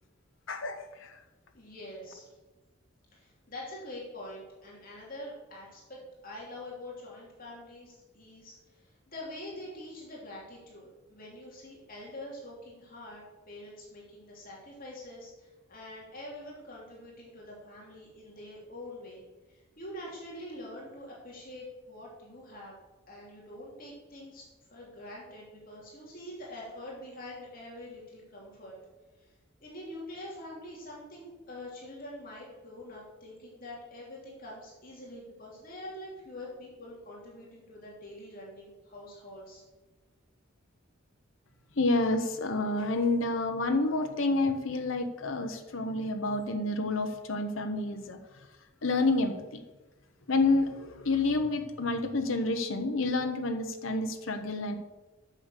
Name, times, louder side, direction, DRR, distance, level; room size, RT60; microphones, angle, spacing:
voice 1, 0.5-1.2 41.8-48.2 48.8-49.6 50.3-54.7, left 2 dB, 70° left, 5 dB, 1.0 m, -29 dB
voice 2, 1.5-2.3 3.1-19.2 19.5-22.7 23.1-28.8 29.2-29.3 29.6-39.6, left 1 dB, 45° left, -4 dB, 3.0 m, -45 dB
9.6 x 6.7 x 6.7 m, 1.2 s
head